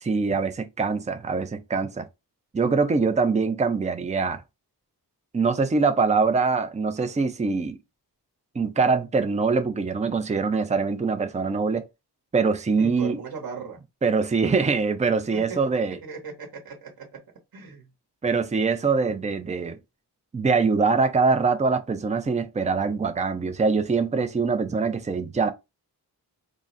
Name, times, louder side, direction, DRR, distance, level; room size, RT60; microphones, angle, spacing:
voice 1, 0.0-2.1 2.5-4.4 5.3-7.8 8.5-11.8 12.3-13.2 14.0-16.0 18.2-19.8 20.3-25.5, right 4 dB, 20° right, 0.5 m, -23 dB
voice 2, 12.8-13.8 15.3-15.6 16.0-17.2 17.5-17.9, right 4 dB, 60° right, 1.1 m, -38 dB
3.7 x 2.0 x 3.9 m
cardioid pair, 70°, 41 cm